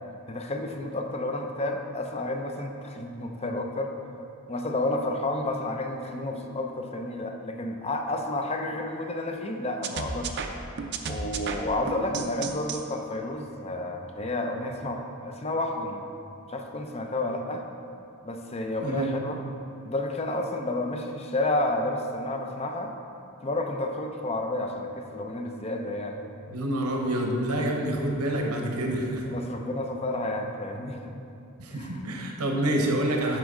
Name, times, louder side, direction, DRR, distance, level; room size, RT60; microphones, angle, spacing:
voice 1, 0.3-3.9 4.5-10.4 11.1-16.0 16.5-17.6 18.2-19.4 19.8-22.9 23.4-26.3 27.6-27.7 29.3-31.1 31.7-32.0, left 2 dB, 30° left, 4 dB, 0.6 m, -31 dB
sound 1, 9.8-12.8, right 5 dB, 50° right, 0.5 m, -33 dB
voice 2, 18.8-19.1 26.5-29.3 31.6-33.4, right 1 dB, 80° right, 1 dB, 1.0 m, -27 dB
9.2 x 6.3 x 3.7 m, 2.6 s
head